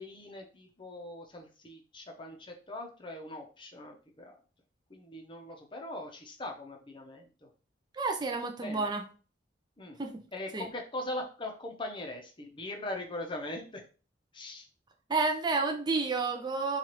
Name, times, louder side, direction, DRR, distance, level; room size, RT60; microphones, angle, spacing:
voice 1, 0.0-4.3 4.9-7.5 8.6-8.9 9.8-10.0 10.3-13.8 14.3-14.7, left 1 dB, 25° left, 2 dB, 0.7 m, -41 dB
voice 2, 7.9-9.0 10.0-10.1 10.5-10.7 15.1-16.8, right 3 dB, 20° right, 4 dB, 0.5 m, -30 dB
4.5 x 2.4 x 2.9 m, 0.36 s
head